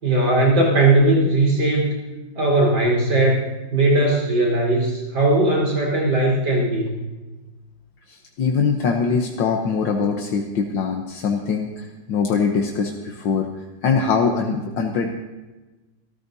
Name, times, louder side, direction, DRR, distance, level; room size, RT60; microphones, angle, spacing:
voice 1, 0.0-1.9 2.3-3.4 3.7-6.9, right 2 dB, 85° right, -2 dB, 5.0 m, -18 dB
voice 2, 8.1-13.5 13.8-15.1, left 5 dB, 80° left, 2 dB, 1.8 m, -22 dB
27.0 x 14.0 x 2.7 m, 1.2 s
omnidirectional pair, 2.0 m